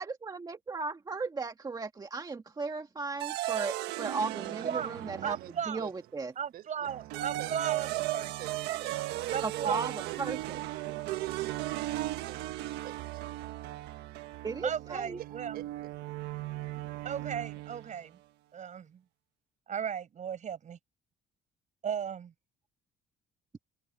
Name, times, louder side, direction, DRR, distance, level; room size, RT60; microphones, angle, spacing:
voice 1, 0.0-5.4 5.7-6.3 9.4-10.6 14.4-15.2, right 4 dB, 25° right, 1.9 m, -36 dB
sound 1, 3.2-5.8 6.8-18.0, right 16 dB, 90° right, 1.4 m, -36 dB
voice 2, 4.6-5.9 6.4-8.3 9.3-10.0 14.6-15.6 17.0-18.2 18.5-19.0 19.7-20.8 21.8-22.3, right 8 dB, 45° right, 7.0 m, -36 dB
voice 3, 5.2-6.1 6.5-7.6 7.9-9.1 9.6-12.5 12.8-13.3 15.2-15.9, right 12 dB, 65° right, 4.1 m, -49 dB
cardioid pair, 110°, 17 cm